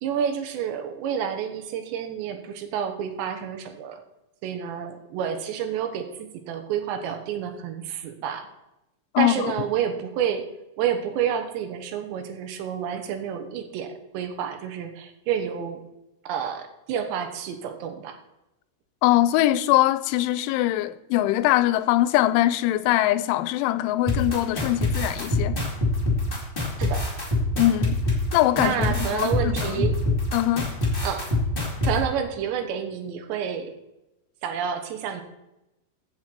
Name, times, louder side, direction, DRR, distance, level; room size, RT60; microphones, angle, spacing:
voice 1, 0.0-4.0 4.4-8.5 9.2-10.4 10.8-15.8 16.2-18.2 26.8-27.0 28.6-29.9 31.0-31.3 31.8-33.7 34.4-35.2, right 8 dB, 75° right, 3.2 m, -29 dB
voice 2, 9.1-9.5 19.0-25.6 27.6-28.0 28.3-29.9 30.3-30.7, left 15 dB, 90° left, 3.0 m, -22 dB
sound 1, 24.1-31.9, left 2 dB, 25° left, 1.1 m, -24 dB
15.0 x 7.6 x 4.5 m
omnidirectional pair, 5.4 m